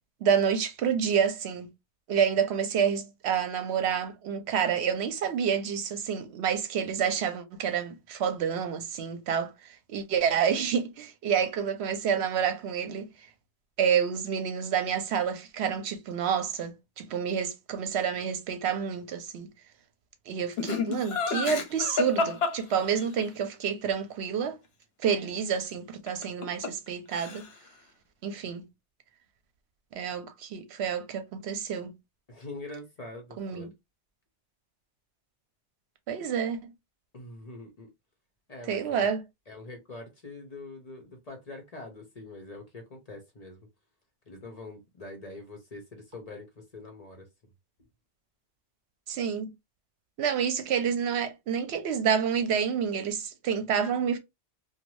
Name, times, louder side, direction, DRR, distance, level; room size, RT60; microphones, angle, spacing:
voice 1, 0.2-1.7 2.1-13.1 13.8-19.5 20.3-24.6 25.0-27.5 28.2-28.6 29.9-31.9 33.4-33.7 36.1-36.7 38.7-39.2 49.1-49.5 50.2-54.2, right 7 dB, 75° right, 0.8 m, -28 dB
Laughter, 20.6-23.3 26.1-26.9 27.1-27.7, left 4 dB, 65° left, 0.9 m, -30 dB
voice 2, 32.3-33.7 37.1-37.9 38.5-39.1 39.5-43.7 44.3-47.3, left 2 dB, 40° left, 0.7 m, -44 dB
2.6 x 2.2 x 3.0 m
omnidirectional pair, 1.2 m